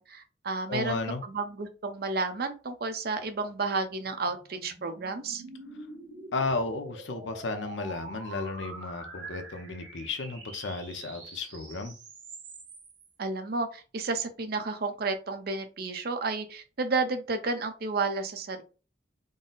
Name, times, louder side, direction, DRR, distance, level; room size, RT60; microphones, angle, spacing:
voice 1, 0.0-5.4 13.2-18.6, right 3 dB, 55° right, 0.6 m, -32 dB
voice 2, 0.7-1.3 6.3-11.9, left 3 dB, 80° left, 0.7 m, -33 dB
sound 1, 3.4-13.1, right 3 dB, 80° right, 1.4 m, -45 dB
3.8 x 2.0 x 3.9 m
head